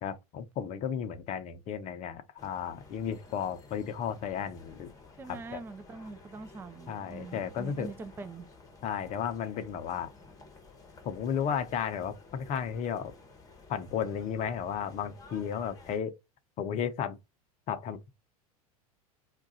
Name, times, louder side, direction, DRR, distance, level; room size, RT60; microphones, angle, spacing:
voice 1, 0.0-4.9 5.3-5.6 6.9-7.9 8.8-10.1 11.0-13.1 13.7-16.1 16.6-17.2 17.7-18.1, left 8 dB, 35° left, 0.6 m, -34 dB
sound 1, 2.4-16.0, left 3 dB, 20° left, 0.9 m, -53 dB
voice 2, 5.2-8.5, right 4 dB, 10° right, 0.3 m, -43 dB
2.4 x 2.2 x 4.0 m
hypercardioid pair, 85°, 19 cm